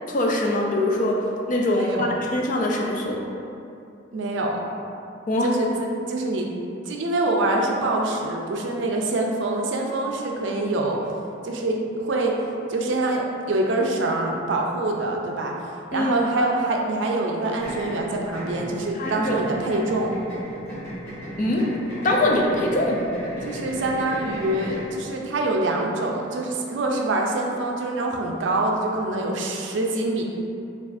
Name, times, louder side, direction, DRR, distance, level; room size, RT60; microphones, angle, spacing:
voice 1, 0.1-1.2 1.5-3.2 5.3-5.5 15.9-16.2 19.0-19.3 21.4-21.7 22.0-23.0, left 1 dB, 45° left, -1 dB, 0.4 m, -23 dB
voice 2, 1.7-2.1 4.1-4.8 5.4-6.5 6.8-11.0 11.4-12.4 12.7-20.1 23.4-30.2, right 2 dB, 70° right, 0 dB, 0.4 m, -25 dB
sound 1, 17.6-24.9, equal, 15° left, 1.0 m, -35 dB
4.7 x 2.4 x 2.5 m, 2.6 s
head